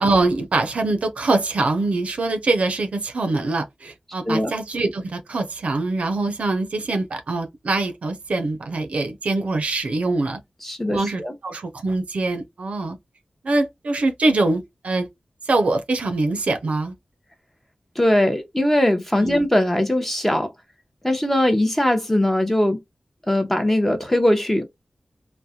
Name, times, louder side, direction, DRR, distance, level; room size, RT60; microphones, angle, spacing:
voice 1, 0.0-10.4 10.9-13.0 13.4-15.1 15.5-16.9 19.2-19.5, right 2 dB, 75° right, 0.5 m, -23 dB
voice 2, 10.6-11.3 18.0-20.5 21.0-22.8 23.3-24.6, left 1 dB, 10° left, 0.6 m, -20 dB
2.3 x 2.1 x 2.7 m
wide cardioid pair, 75°, 2 cm